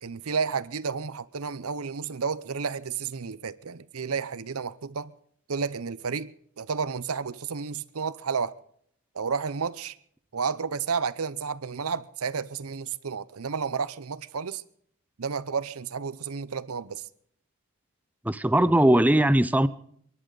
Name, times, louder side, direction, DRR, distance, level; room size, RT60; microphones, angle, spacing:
voice 1, 0.0-5.1 5.5-6.3 6.6-8.5 9.1-10.0 10.3-14.6 15.2-17.0, right 5 dB, 80° right, 0.7 m, -31 dB
voice 2, 18.2-19.7, right 1 dB, 5° right, 0.5 m, -20 dB
29.5 x 11.5 x 4.0 m
head